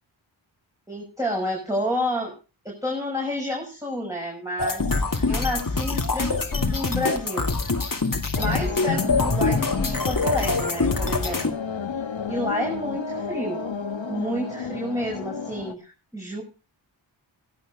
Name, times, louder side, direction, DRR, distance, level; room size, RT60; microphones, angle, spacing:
voice 1, 0.9-2.3 2.6-7.5 8.4-11.4 12.3-13.6 14.1-16.4, left 1 dB, 5° right, -2 dB, 6.7 m, -29 dB
sound 1, 4.6-11.5, left 3 dB, 40° left, 2.4 m, -24 dB
sound 2, 8.4-15.7, left 5 dB, 70° left, 1.5 m, -32 dB
16.0 x 12.0 x 5.1 m, 0.33 s
wide cardioid pair, 60°, 48 cm